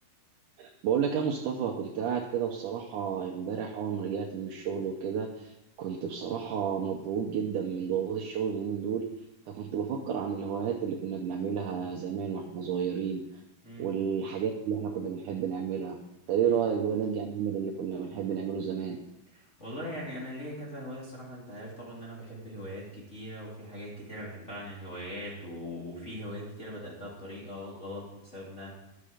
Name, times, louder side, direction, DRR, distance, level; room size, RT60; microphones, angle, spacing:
voice 1, 0.6-9.0 9.5-13.2 13.8-16.0 16.3-19.0, right 7 dB, 75° right, 0 dB, 2.0 m, -31 dB
voice 2, 19.3-28.7, equal, 20° left, -6 dB, 2.3 m, -41 dB
12.0 x 6.6 x 5.0 m, 0.88 s
omnidirectional pair, 4.2 m